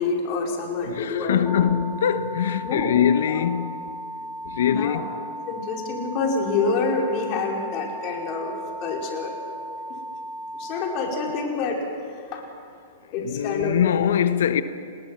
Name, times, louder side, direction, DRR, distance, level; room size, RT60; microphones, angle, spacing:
voice 1, 0.0-1.7 2.6-3.0 4.7-5.0 5.5-9.3 10.5-11.8 12.1-12.4 13.1-13.7, left 4 dB, 45° left, 5.2 m, -27 dB
voice 2, 0.8-3.8 4.4-5.2 13.2-14.6, left 9 dB, 70° left, 1.2 m, -23 dB
sound 1, 1.5-11.5, equal, 5° left, 1.1 m, -36 dB
30.0 x 20.5 x 6.1 m
hypercardioid pair, 120°, 0 cm